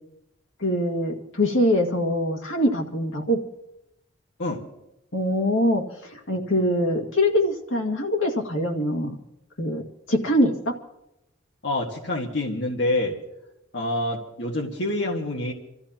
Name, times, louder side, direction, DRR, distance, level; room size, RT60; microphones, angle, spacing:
voice 1, 0.6-3.4 5.1-9.2 9.6-9.8 10.1-10.8, left 1 dB, 75° left, 1 dB, 2.1 m, -23 dB
voice 2, 11.6-13.2 13.7-15.5, left 1 dB, 60° left, -1 dB, 1.8 m, -27 dB
28.0 x 14.0 x 3.0 m, 0.87 s
head